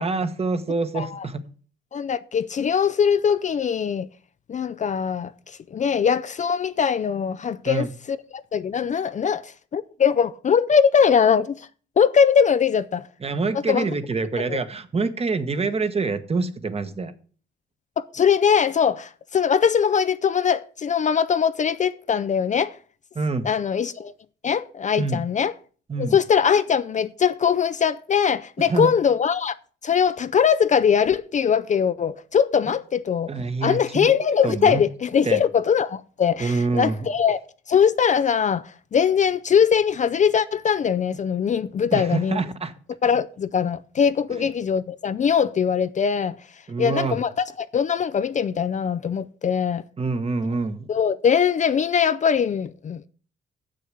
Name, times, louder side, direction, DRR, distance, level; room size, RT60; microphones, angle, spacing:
voice 1, 0.0-1.4 7.6-7.9 13.2-17.1 23.1-23.5 25.0-25.2 25.9-26.2 28.6-28.9 33.3-34.1 34.4-34.8 35.2-35.4 36.4-37.0 41.9-42.7 44.3-44.5 46.7-47.2 50.0-50.9, right 4 dB, 30° right, 1.2 m, -26 dB
voice 2, 0.9-1.3 1.9-4.1 4.5-11.7 12.0-13.0 13.7-13.8 14.4-14.6 18.0-22.8 23.4-24.1 24.4-25.5 26.0-29.6 29.8-33.3 33.6-37.4 37.7-42.4 43.0-46.3 46.8-49.8 50.9-53.1, left 7 dB, 40° left, 0.5 m, -21 dB
7.1 x 6.6 x 7.7 m
cardioid pair, 90°, 20 cm